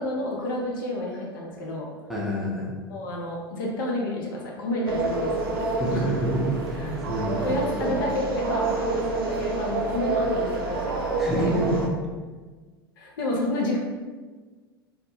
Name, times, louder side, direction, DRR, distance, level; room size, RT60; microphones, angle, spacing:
voice 1, 0.0-1.9 2.9-6.1 6.8-6.9 7.4-11.0 11.4-11.5 13.0-13.8, left 1 dB, 60° left, -1 dB, 0.5 m, -30 dB
voice 2, 2.1-2.7 5.8-7.4 7.9-8.0 11.2-11.9, right 1 dB, ahead, -5 dB, 0.5 m, -27 dB
sound 1, 4.9-11.9, right 3 dB, 70° right, 0.4 m, -28 dB
2.1 x 2.0 x 2.9 m, 1.4 s
figure-of-eight pair, 75°, 13 cm